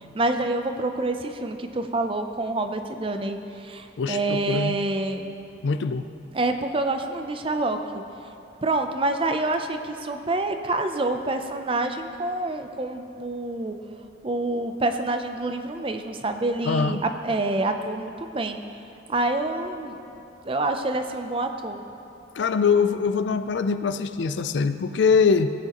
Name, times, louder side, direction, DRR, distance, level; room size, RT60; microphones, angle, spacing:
voice 1, 0.1-3.4 3.6-5.3 6.3-7.8 8.6-13.7 14.2-18.6 19.1-20.0 20.4-21.8, right 2 dB, 30° right, 6 dB, 0.5 m, -27 dB
voice 2, 4.0-4.8 5.6-6.1 16.6-17.0 22.4-25.5, left 5 dB, 70° left, 11 dB, 0.4 m, -23 dB
16.5 x 8.2 x 3.0 m, 2.8 s
head